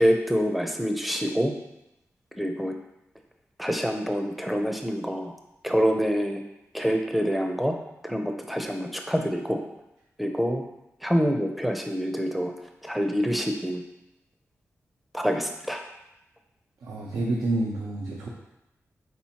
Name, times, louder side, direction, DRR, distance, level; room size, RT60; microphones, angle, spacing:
voice 1, 0.0-1.5 2.4-2.7 3.6-5.3 5.6-6.4 6.7-7.8 8.0-9.6 10.2-10.6 11.0-12.5 12.8-13.8 15.1-15.8, equal, ahead, 3 dB, 0.5 m, -26 dB
voice 2, 16.8-18.3, right 2 dB, 85° right, -3 dB, 0.6 m, -28 dB
4.3 x 4.2 x 2.8 m, 0.91 s
wide cardioid pair, 85°, 6 cm